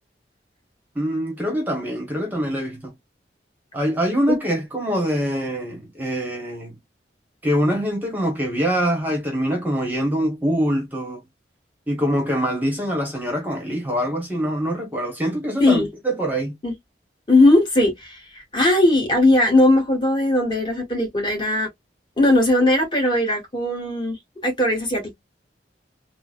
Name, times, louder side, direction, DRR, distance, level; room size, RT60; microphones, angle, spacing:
voice 1, 0.9-2.9 3.7-6.8 7.4-11.2 11.9-16.5, equal, 10° right, 0.9 m, -24 dB
voice 2, 17.3-21.7 22.2-25.1, left 1 dB, 25° left, 1.4 m, -19 dB
3.8 x 2.0 x 2.3 m
head